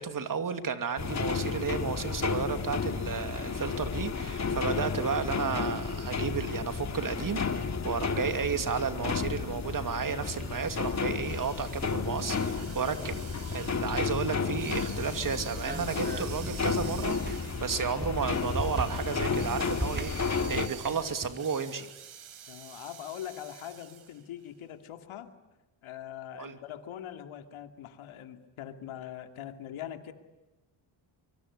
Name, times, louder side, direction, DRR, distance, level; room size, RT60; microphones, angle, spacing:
voice 1, 0.0-13.2 13.5-21.9 26.3-26.6, right 6 dB, 40° right, 9 dB, 2.7 m, -33 dB
sound 1, 1.0-20.7, left 5 dB, 35° left, 2.2 m, -32 dB
sound 2, 10.3-24.2, right 9 dB, 80° right, 4.7 m, -48 dB
sound 3, 14.2-21.4, right 3 dB, 20° right, 2.7 m, -41 dB
voice 2, 22.5-25.3 25.8-30.1, left 11 dB, 80° left, 7 dB, 2.6 m, -42 dB
24.5 x 24.0 x 9.9 m, 1.0 s
cardioid pair, 95°, 48 cm